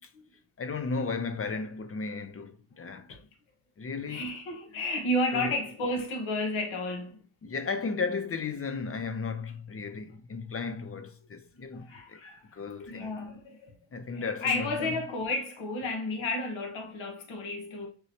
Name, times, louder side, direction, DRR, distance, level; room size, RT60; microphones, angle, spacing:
voice 1, 0.6-3.2 3.8-4.2 5.3-5.5 7.4-12.2 12.5-13.1 13.9-15.0, left 4 dB, 30° left, 0.6 m, -34 dB
voice 2, 4.1-7.2 11.8-13.7 14.1-17.9, left 1 dB, 70° left, 1.3 m, -32 dB
6.1 x 3.1 x 2.8 m
cardioid pair, 80°, 48 cm